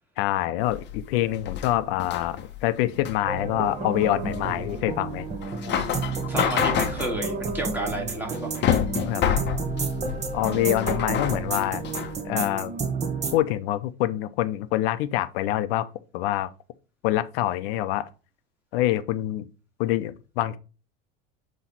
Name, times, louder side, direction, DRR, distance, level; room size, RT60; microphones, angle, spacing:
voice 1, 0.2-5.2 9.1-9.6 10.3-11.8 12.2-12.7 13.3-15.9 16.1-16.5 17.0-18.1 18.7-19.5 19.8-20.6, left 14 dB, 75° left, 0.7 m, -26 dB
sound 1, 0.6-12.2, left 9 dB, 35° left, 0.8 m, -29 dB
sound 2, 3.3-13.4, right 4 dB, 20° right, 1.0 m, -31 dB
voice 2, 6.3-8.8, right 1 dB, 5° right, 2.0 m, -31 dB
7.4 x 3.1 x 4.1 m
supercardioid pair, 120°, 30 cm